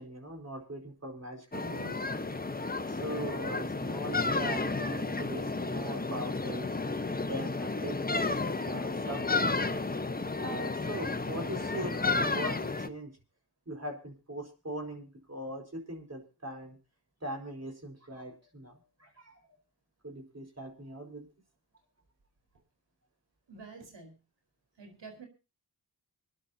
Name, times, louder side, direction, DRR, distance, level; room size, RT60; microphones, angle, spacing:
voice 1, 0.0-2.0 2.9-6.7 7.3-8.0 8.2-8.4 8.7-9.5 10.4-13.1 13.7-16.8 17.2-19.6 20.0-21.3, right 1 dB, 35° right, 3 dB, 4.6 m, -41 dB
sound 1, 1.5-12.9, left 3 dB, 20° left, 1.1 m, -32 dB
voice 2, 23.5-24.2 24.8-25.3, right 4 dB, 80° right, 5 dB, 4.5 m, -48 dB
26.5 x 11.0 x 2.8 m, 0.30 s
cardioid pair, 55°, 42 cm